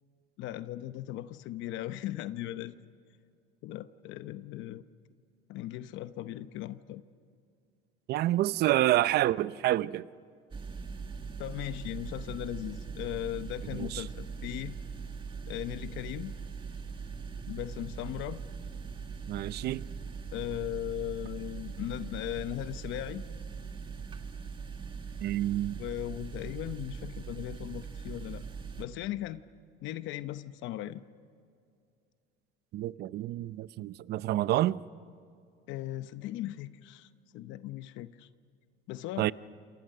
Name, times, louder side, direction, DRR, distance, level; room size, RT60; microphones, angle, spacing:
voice 1, 0.4-2.8 3.6-4.8 5.5-7.0 11.4-14.8 15.5-16.3 17.5-18.4 20.3-23.2 25.8-28.4 28.8-29.4 29.8-31.0 35.7-38.3 38.9-39.3, left 13 dB, 65° left, 0.9 m, -38 dB
voice 2, 8.1-10.1 13.7-14.0 19.3-19.9 25.2-25.8 32.7-34.8 39.2-39.3, right 14 dB, 50° right, 0.6 m, -28 dB
sound 1, 10.5-28.8, right 5 dB, 25° right, 1.9 m, -41 dB
28.5 x 27.5 x 6.7 m
cardioid pair, 130°, 21 cm